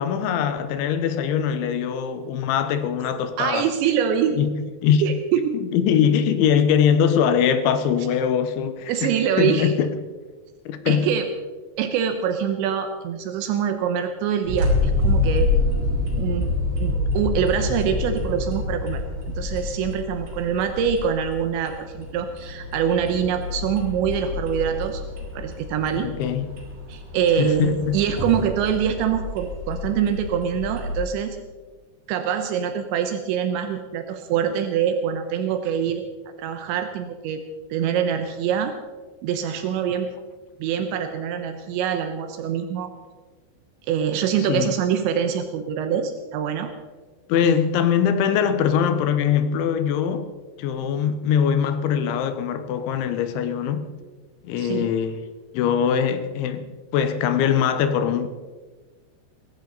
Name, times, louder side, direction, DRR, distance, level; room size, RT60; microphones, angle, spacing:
voice 1, 0.0-3.7 4.4-4.5 4.8-5.2 5.6-9.1 9.4-9.9 10.7-11.1 26.0-26.5 27.4-28.0 44.5-44.7 47.3-50.3 50.6-53.9 54.4-55.2 55.5-56.7 56.9-58.3, left 8 dB, 85° left, 3.5 m, -22 dB
voice 2, 3.4-4.4 5.0-5.6 8.2-8.3 8.9-9.7 10.9-11.3 11.8-15.5 16.2-16.5 16.8-19.0 19.4-25.0 25.3-26.1 26.9-31.4 32.1-36.0 36.4-37.4 37.7-38.7 39.2-40.1 40.6-42.9 43.9-46.7 47.4-47.6 54.6-54.9, right 8 dB, 85° right, 3.3 m, -24 dB
sound 1, 14.4-31.0, left 3 dB, 50° right, 5.8 m, -27 dB
21.0 x 16.0 x 4.1 m
omnidirectional pair, 5.2 m